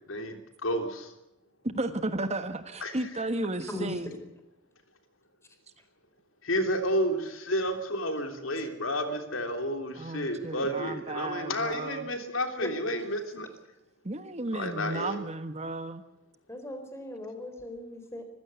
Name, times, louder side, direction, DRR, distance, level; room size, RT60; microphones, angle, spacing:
voice 1, 0.1-1.1 2.8-3.0 6.4-13.5 14.5-15.2, equal, 80° left, 6 dB, 3.3 m, -31 dB
voice 2, 1.6-4.1 10.0-12.1 14.0-16.0, right 2 dB, 35° right, 10 dB, 1.4 m, -33 dB
voice 3, 3.7-4.2 12.6-12.7 16.5-18.2, left 1 dB, 15° left, 6 dB, 4.2 m, -38 dB
25.5 x 15.5 x 8.2 m, 0.92 s
head